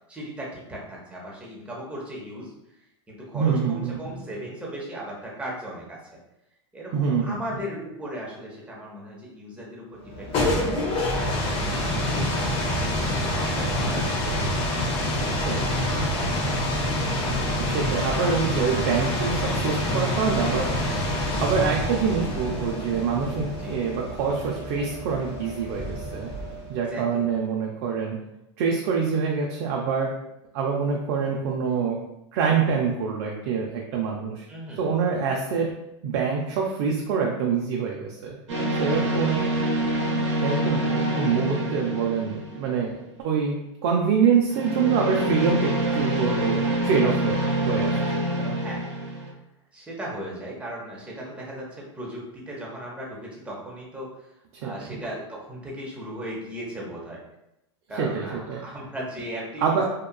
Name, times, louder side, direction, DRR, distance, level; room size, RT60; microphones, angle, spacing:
voice 1, 0.1-2.5 3.1-6.2 6.7-10.6 11.1-16.7 23.6-23.8 26.9-27.3 34.5-34.9 38.9-39.8 48.6-49.2 49.7-54.3 54.6-57.2 57.9-59.9, equal, 10° right, -4 dB, 0.8 m, -37 dB
voice 2, 3.3-4.2 6.9-7.2 13.6-13.7 13.9-14.3 15.4-15.5 16.0-16.1 17.6-20.7 21.2-26.3 26.7-28.2 28.6-30.1 30.5-32.0 32.3-34.4 34.8-35.7 36.0-38.4 38.8-39.4 40.4-48.0 48.4-48.6 54.5-54.7 58.0-58.6 59.6-59.8, right 6 dB, 55° right, -1 dB, 0.4 m, -25 dB
sound 1, 10.0-26.8, left 1 dB, 40° left, 0.6 m, -27 dB
Breath Voices, 38.5-42.9 44.5-49.3, right 1 dB, 90° right, 0.7 m, -26 dB
2.8 x 2.3 x 2.2 m, 0.86 s
hypercardioid pair, 120°, 15 cm